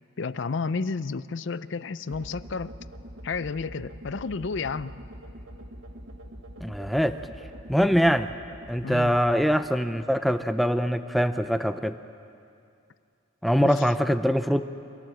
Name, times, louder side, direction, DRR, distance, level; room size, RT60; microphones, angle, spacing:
voice 1, 0.2-2.8 3.2-4.9 8.8-9.2 13.6-13.9, left 4 dB, 60° left, 16 dB, 0.5 m, -31 dB
sound 1, 2.1-10.3, equal, 75° right, 1.4 m, -44 dB
voice 2, 6.6-7.2 7.7-8.3 8.7-12.0 13.4-14.6, equal, ahead, 10 dB, 0.5 m, -23 dB
26.0 x 17.0 x 7.6 m, 2.5 s
head